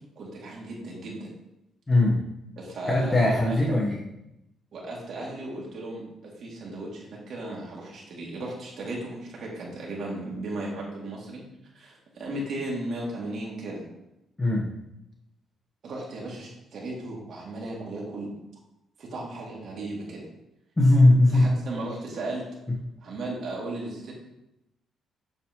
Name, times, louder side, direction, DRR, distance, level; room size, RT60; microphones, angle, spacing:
voice 1, 0.1-1.3 2.6-3.5 4.7-11.5 11.7-13.9 15.8-18.3 19.0-20.3 21.3-22.4 23.0-24.1, right 2 dB, 60° right, -4 dB, 3.2 m, -36 dB
voice 2, 1.9-2.2 2.9-4.0 14.4-14.7 20.8-21.5, left 1 dB, 20° left, -4 dB, 1.6 m, -19 dB
8.4 x 7.0 x 3.3 m, 0.88 s
cardioid pair, 90°, 0 cm